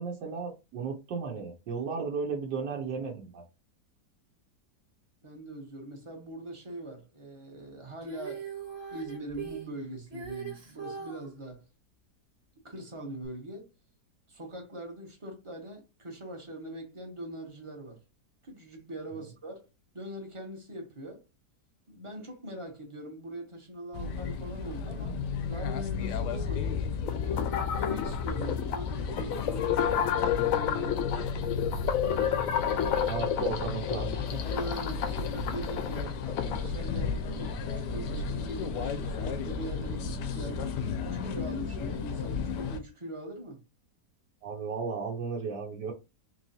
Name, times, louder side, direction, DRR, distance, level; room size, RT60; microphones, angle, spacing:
voice 1, 0.0-3.4 32.7-34.4 44.4-45.9, right 5 dB, 80° right, 1.4 m, -35 dB
voice 2, 5.2-8.5 8.9-11.7 12.6-13.7 14.3-18.0 18.4-19.7 19.9-21.2 21.9-25.2 25.5-26.8 27.2-31.1 32.7-32.9 34.4-43.6, right 1 dB, 25° right, 0.8 m, -42 dB
Female singing, 8.0-11.3 13.2-13.3, right 6 dB, 40° right, 1.3 m, -40 dB
sound 1, 23.9-42.8, left 5 dB, 90° left, 1.2 m, -34 dB
sound 2, 27.1-36.7, left 9 dB, 70° left, 0.8 m, -31 dB
3.9 x 3.1 x 2.7 m
omnidirectional pair, 1.8 m